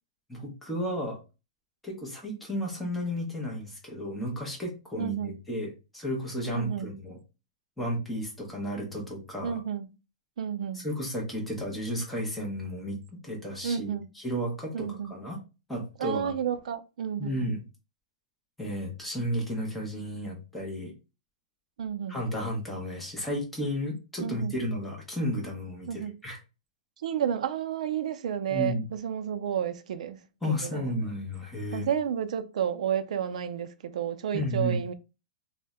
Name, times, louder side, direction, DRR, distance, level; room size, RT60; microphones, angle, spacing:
voice 1, 0.3-1.2 1.8-7.2 7.8-9.6 10.7-15.4 15.7-16.3 17.2-17.6 18.6-20.9 22.1-26.4 28.5-28.8 30.4-31.9 34.3-34.8, equal, ahead, 0.7 m, -33 dB
voice 2, 5.0-5.4 6.5-6.9 9.4-9.9 10.4-10.9 13.6-14.1 14.7-15.2 16.0-17.3 21.8-22.2 24.2-24.5 25.9-26.2 27.0-30.9 31.7-34.9, right 8 dB, 70° right, 0.4 m, -31 dB
2.6 x 2.1 x 3.5 m
supercardioid pair, 170°, 4 cm